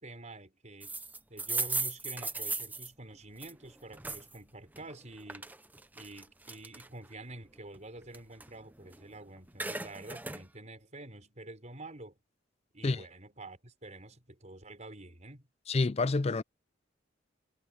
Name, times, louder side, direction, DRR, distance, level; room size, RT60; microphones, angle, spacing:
voice 1, 0.0-1.0 1.3-5.5 5.9-12.2 12.7-15.5, right 2 dB, 40° right, 5.6 m, -48 dB
sound 1, 0.8-4.4 4.7-7.1 7.6-9.1 9.4-10.4, right 3 dB, 10° right, 0.7 m, -37 dB
voice 2, 15.7-16.4, left 3 dB, 35° left, 0.5 m, -28 dB
head